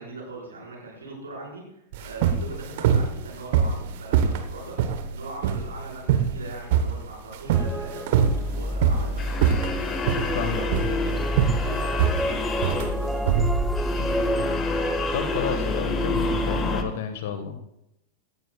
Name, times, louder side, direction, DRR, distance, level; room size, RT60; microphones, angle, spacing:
voice 1, 0.0-4.8 5.1-8.2 8.5-9.7 10.5-11.3 11.6-13.5, right 2 dB, 70° right, -2 dB, 4.6 m, -40 dB
sound 1, 1.9-14.2, right 7 dB, 50° right, 1.0 m, -24 dB
sound 2, 7.5-8.9 11.2-16.4, equal, ahead, 0.4 m, -33 dB
sound 3, 8.2-16.8, left 2 dB, 25° left, 1.3 m, -27 dB
voice 2, 10.3-10.9 14.0-14.4 15.1-17.6, left 7 dB, 55° left, 8 dB, 1.4 m, -31 dB
16.5 x 12.5 x 2.3 m, 0.82 s
figure-of-eight pair, 90°, 0 cm